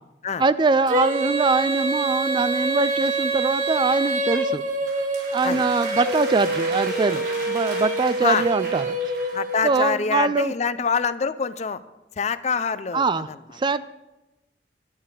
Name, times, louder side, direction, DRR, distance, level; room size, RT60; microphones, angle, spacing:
voice 1, 0.4-4.6 5.3-9.0 9.6-10.5 12.9-13.3 13.6-13.8, right 3 dB, 25° right, 15 dB, 0.4 m, -23 dB
Female singing, 0.9-9.7, right 2 dB, 50° right, 1.5 m, -26 dB
sound 1, 4.9-10.0, right 2 dB, 65° right, 4.8 m, -37 dB
voice 2, 9.3-11.8 12.2-13.0, left 5 dB, 40° left, 14 dB, 0.5 m, -25 dB
11.0 x 10.0 x 6.5 m, 0.99 s
head